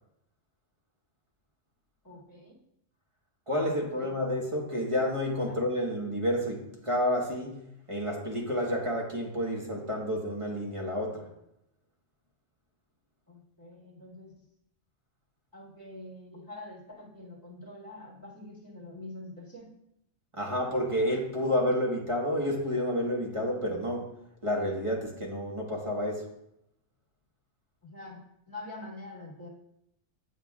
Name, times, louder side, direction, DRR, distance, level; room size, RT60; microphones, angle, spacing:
voice 1, 2.0-2.6 3.6-4.1 5.5-5.6 13.3-14.3 15.5-19.7 27.8-28.2 28.5-29.5, left 2 dB, 15° left, -6 dB, 2.1 m, -45 dB
voice 2, 3.5-7.6 7.9-11.3 20.3-24.1 24.4-26.3, equal, 25° right, -2 dB, 1.3 m, -30 dB
7.9 x 7.5 x 2.4 m, 0.80 s
omnidirectional pair, 1.3 m